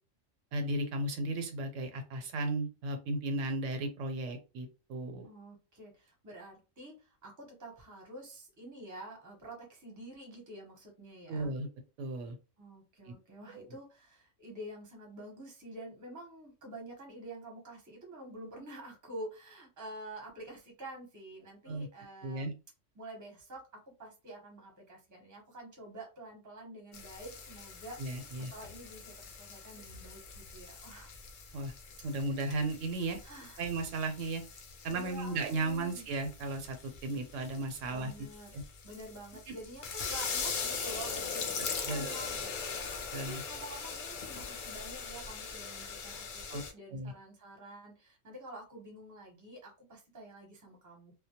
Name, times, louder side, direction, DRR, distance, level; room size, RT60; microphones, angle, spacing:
voice 1, 0.5-5.3 11.3-11.7 12.0-12.4 13.1-13.2 13.5-13.7 21.7-21.9 22.2-22.5 28.0-28.5 31.5-31.7 32.0-33.2 33.6-34.4 34.8-38.3 38.5-38.6 39.5-39.6 41.9-42.1 43.1-43.4 46.5-46.6 46.9-47.1, right 2 dB, 80° right, 6 dB, 0.9 m, -35 dB
voice 2, 5.2-11.5 12.6-22.5 22.9-23.6 24.0-31.1 32.1-32.3 33.2-33.7 34.9-36.0 37.9-51.1, right 1 dB, 20° right, 0 dB, 0.6 m, -48 dB
sound 1, 26.9-46.7, left 5 dB, 65° left, 0.5 m, -41 dB
2.2 x 2.0 x 2.7 m, 0.31 s
omnidirectional pair, 1.3 m